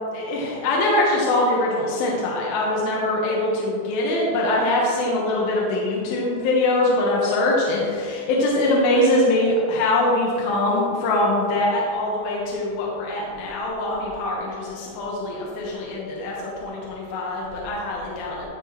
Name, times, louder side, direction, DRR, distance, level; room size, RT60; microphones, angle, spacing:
voice 1, 0.1-18.5, left 1 dB, 70° left, -4 dB, 2.5 m, -23 dB
15.5 x 5.5 x 3.1 m, 2.5 s
omnidirectional pair, 5.2 m